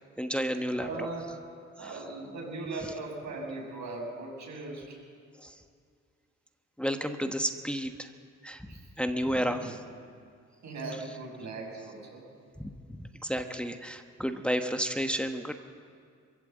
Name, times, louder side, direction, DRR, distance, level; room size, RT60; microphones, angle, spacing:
voice 1, 0.2-1.1 1.8-1.9 5.4-5.5 6.8-8.1 8.4-8.7 9.0-9.8 12.6-15.5, equal, 5° left, 5 dB, 1.2 m, -32 dB
voice 2, 0.8-1.3 1.8-5.0 8.7-8.8 9.2-9.8 10.6-12.2, right 3 dB, 70° right, 0 dB, 6.6 m, -39 dB
23.0 x 15.0 x 8.0 m, 2.3 s
cardioid pair, 90°, 30 cm